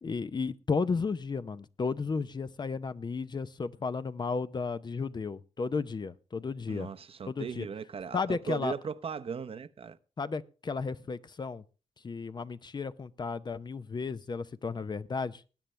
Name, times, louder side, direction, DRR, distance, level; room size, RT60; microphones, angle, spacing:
voice 1, 0.0-6.9 7.3-7.7 8.1-8.7 10.2-11.6 12.0-15.4, left 4 dB, 40° left, 0.7 m, -33 dB
voice 2, 6.7-10.0, right 6 dB, 55° right, 0.8 m, -38 dB
19.5 x 9.0 x 3.2 m
cardioid pair, 90°, 12 cm